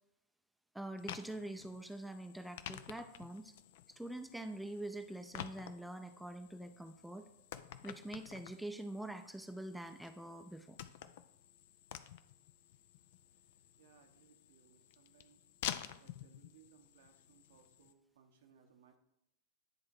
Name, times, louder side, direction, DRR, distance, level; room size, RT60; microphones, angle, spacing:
voice 1, 0.7-3.5 4.0-7.3 7.8-10.8, right 1 dB, 5° right, 7 dB, 0.5 m, -45 dB
sound 1, 1.0-17.9, left 11 dB, 60° left, 0.4 m, -50 dB
voice 2, 13.8-15.4 16.0-19.0, right 7 dB, 70° right, 5 dB, 1.0 m, -66 dB
9.8 x 3.5 x 4.7 m, 0.85 s
hypercardioid pair, 95°, 0 cm